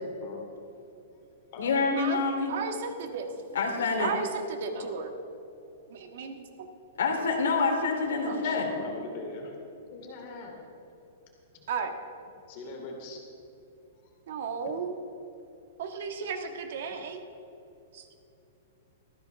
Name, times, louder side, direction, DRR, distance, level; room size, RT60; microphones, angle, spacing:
voice 1, 1.6-2.5 3.5-4.1 7.0-8.7, left 4 dB, 90° left, 2 dB, 3.2 m, -27 dB
voice 2, 2.5-3.3 4.0-5.1 5.9-6.4 8.2-8.4 11.7-11.9 14.3-15.0 15.8-17.2 17.9-18.1, right 5 dB, 50° right, 5 dB, 1.5 m, -34 dB
voice 3, 8.3-9.6 9.9-10.5 12.5-13.2, left 3 dB, 35° left, 0 dB, 3.0 m, -41 dB
19.0 x 14.5 x 3.5 m, 2.9 s
hypercardioid pair, 175°, 0 cm